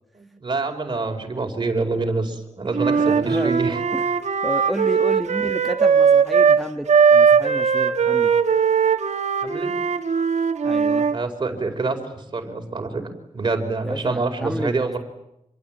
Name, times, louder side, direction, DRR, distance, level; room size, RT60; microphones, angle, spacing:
voice 1, 0.1-3.8 4.9-5.0 9.4-9.7 11.1-13.0 13.3-15.0, right 3 dB, 40° right, 4 dB, 4.9 m, -26 dB
Wind instrument woodwind instrument, 2.7-6.6 6.9-11.2, right 6 dB, 65° right, 2.0 m, -19 dB
voice 2, 2.9-3.6 3.9-8.3 10.6-11.1 13.8-14.7, equal, ahead, 4 dB, 1.3 m, -30 dB
27.5 x 22.0 x 9.0 m, 0.84 s
wide cardioid pair, 160°, 12 cm